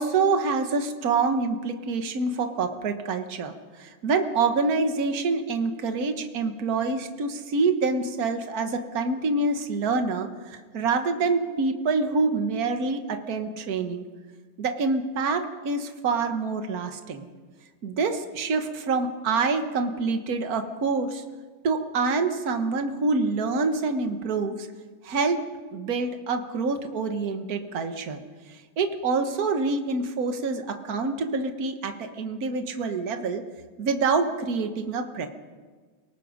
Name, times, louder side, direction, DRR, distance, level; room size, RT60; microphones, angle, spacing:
voice 1, 0.0-3.5 3.8-14.0 14.6-17.2 17.8-21.2 21.6-24.7 25.0-25.4 25.7-28.2 28.8-33.4 33.8-35.3, right 4 dB, 45° right, 6 dB, 1.2 m, -26 dB
29.5 x 18.5 x 5.2 m, 1.4 s
omnidirectional pair, 3.4 m